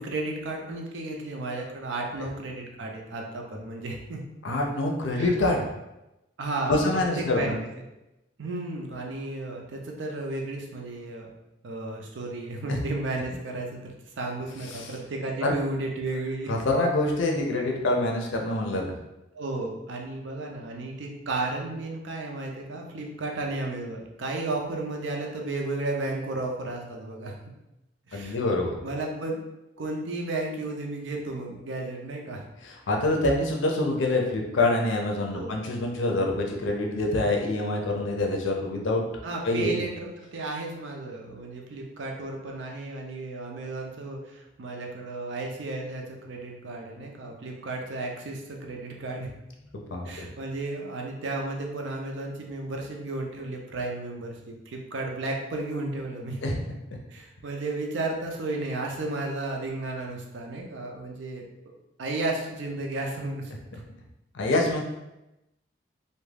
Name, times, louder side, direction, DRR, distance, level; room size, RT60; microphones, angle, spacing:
voice 1, 0.0-4.2 5.1-5.3 6.4-7.6 8.4-11.3 11.6-16.5 19.3-27.3 28.1-28.4 28.8-29.4 29.8-32.4 35.3-35.5 39.2-49.3 50.0-56.4 57.1-61.4 62.0-63.5, right 2 dB, 75° right, 1 dB, 0.5 m, -33 dB
voice 2, 4.4-5.7 6.7-7.6 12.7-12.8 14.7-14.9 15.4-15.5 16.5-18.9 28.1-28.8 32.6-39.1 39.4-39.7 49.7-50.3 56.4-56.5 64.3-64.8, left 2 dB, 75° left, 1 dB, 0.5 m, -26 dB
2.3 x 2.1 x 3.2 m, 0.95 s
head